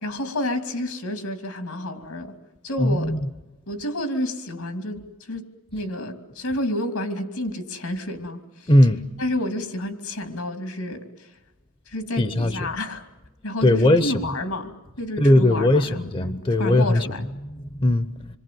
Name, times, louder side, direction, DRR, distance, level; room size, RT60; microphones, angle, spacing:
voice 1, 0.0-2.3 2.6-3.2 3.7-5.5 5.7-8.7 9.2-11.3 11.9-13.1 13.4-14.7 15.0-17.2, left 1 dB, 80° left, 2.9 m, -30 dB
voice 2, 2.8-3.3 8.7-9.0 12.2-12.7 13.6-14.4 15.2-18.4, left 1 dB, 25° left, 0.8 m, -20 dB
27.0 x 23.0 x 7.7 m
head